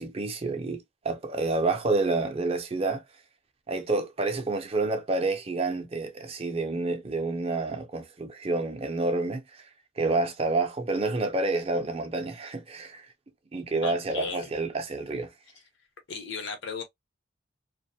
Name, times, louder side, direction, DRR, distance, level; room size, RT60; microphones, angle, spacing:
voice 1, 0.0-3.0 3.7-9.4 10.0-13.0 13.5-15.3, right 3 dB, 30° right, 0.5 m, -28 dB
voice 2, 13.8-14.5 16.1-16.8, left 4 dB, 60° left, 0.9 m, -35 dB
2.5 x 2.2 x 2.7 m
head